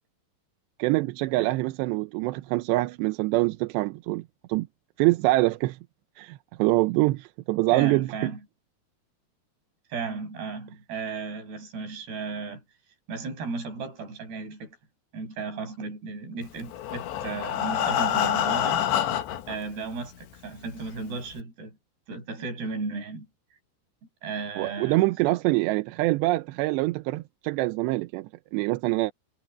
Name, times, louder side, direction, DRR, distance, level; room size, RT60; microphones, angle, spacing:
voice 1, 0.8-4.2 4.5-4.7 5.0-5.8 6.2-8.3 24.6-29.1, right 20 dB, 90° right, 2.9 m, -25 dB
voice 2, 7.7-8.4 9.9-12.6 13.1-14.8 15.1-18.8 19.5-21.8 22.1-23.3 24.2-25.3, right 4 dB, 70° right, 8.0 m, -35 dB
Breathing, 16.6-19.6 20.3-20.4 20.8-20.9 21.3-21.4, left 10 dB, 90° left, 3.7 m, -26 dB
omnidirectional pair, 4.9 m